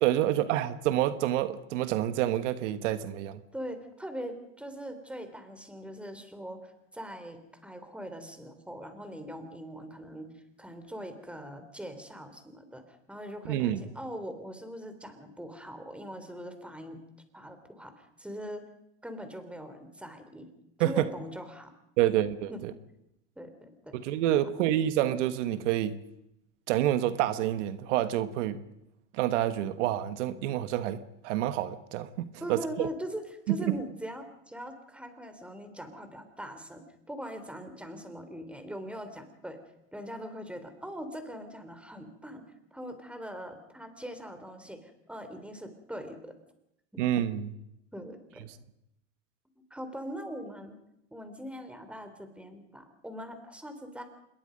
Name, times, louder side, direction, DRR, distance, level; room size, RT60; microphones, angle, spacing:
voice 1, 0.0-3.4 13.4-13.8 20.8-21.0 22.0-22.7 23.9-26.0 26.7-28.6 29.1-32.9 33.5-33.7 47.0-47.5, right 12 dB, 75° right, 12 dB, 1.5 m, -28 dB
voice 2, 3.5-17.0 17.3-18.6 19.0-20.5 20.8-21.7 22.5-22.6 23.4-24.0 32.4-39.6 39.9-42.4 42.7-46.3 47.9-48.4 49.7-50.8 51.1-54.0, equal, 5° right, 8 dB, 3.8 m, -41 dB
26.5 x 21.5 x 5.3 m, 0.81 s
supercardioid pair, 110°, 37 cm